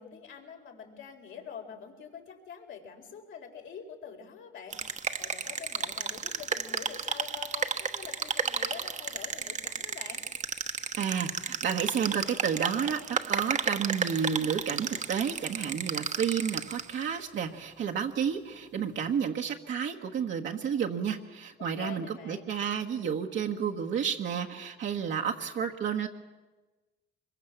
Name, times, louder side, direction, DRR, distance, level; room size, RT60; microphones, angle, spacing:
voice 1, 0.0-4.8 5.2-10.2 21.8-22.5, left 7 dB, 75° left, 2 dB, 4.5 m, -45 dB
sound 1, 4.7-17.0, right 5 dB, 35° right, 1.1 m, -33 dB
voice 2, 11.0-26.1, right 7 dB, 70° right, 1 dB, 1.5 m, -31 dB
24.5 x 22.5 x 7.3 m, 1.2 s
cardioid pair, 90°, 20 cm